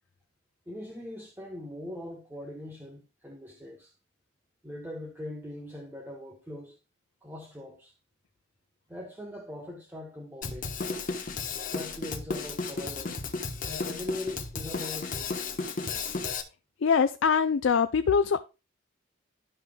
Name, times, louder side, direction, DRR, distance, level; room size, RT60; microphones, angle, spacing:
voice 1, 0.7-3.9 4.6-6.8 7.2-7.9 8.9-10.7 11.5-13.2 13.6-15.4 16.0-16.3, left 1 dB, 10° right, 1.2 m, -41 dB
Drum kit, 10.4-16.4, left 4 dB, 40° left, 1.1 m, -34 dB
voice 2, 16.8-18.4, left 6 dB, 70° left, 0.4 m, -23 dB
12.5 x 5.6 x 2.3 m
head